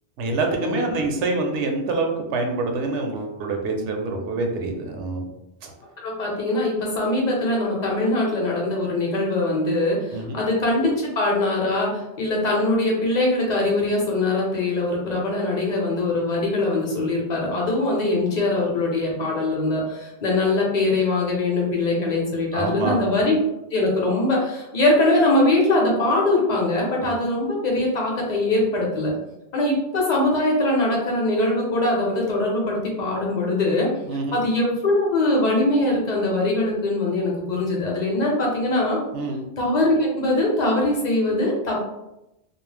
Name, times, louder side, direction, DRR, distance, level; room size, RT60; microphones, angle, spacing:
voice 1, 0.2-5.3 5.6-5.7 10.1-10.4 22.5-23.0 27.0-27.1 34.1-34.4 39.1-39.4, right 3 dB, 80° right, 2 dB, 0.9 m, -26 dB
voice 2, 6.0-23.3 23.7-29.1 29.5-33.9 34.3-39.0 39.6-41.9, left 2 dB, 45° left, -2 dB, 0.8 m, -22 dB
2.4 x 2.0 x 3.2 m, 0.91 s
omnidirectional pair, 1.2 m